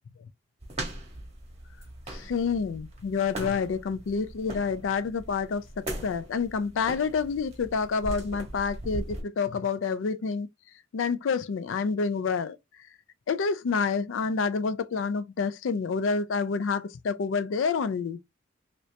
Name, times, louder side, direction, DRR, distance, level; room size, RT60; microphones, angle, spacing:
sound 1, 0.6-9.2, right 1 dB, 35° right, 1.2 m, -40 dB
voice 1, 2.1-10.5 10.9-12.6 13.3-18.2, left 5 dB, 85° left, 0.4 m, -28 dB
2.9 x 2.8 x 3.2 m
head